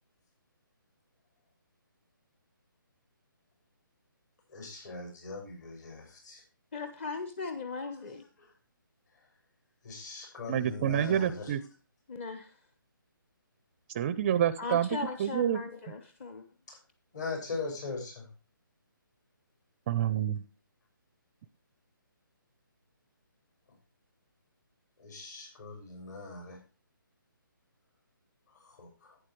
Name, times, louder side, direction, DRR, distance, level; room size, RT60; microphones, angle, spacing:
voice 1, 4.5-6.4 7.9-8.1 8.4-8.5 9.8-11.5 16.7-16.8 17.1-18.3 25.0-26.6 28.5-29.2, left 4 dB, 55° left, 1 dB, 6.2 m, -41 dB
voice 2, 6.7-8.2 12.1-12.5 14.6-16.4, left 4 dB, 35° left, 8 dB, 1.1 m, -38 dB
voice 3, 10.5-11.6 13.9-14.9 15.2-15.6 19.9-20.4, right 10 dB, 25° right, 15 dB, 0.5 m, -28 dB
11.5 x 9.0 x 3.1 m, 0.33 s
hypercardioid pair, 155°, 12 cm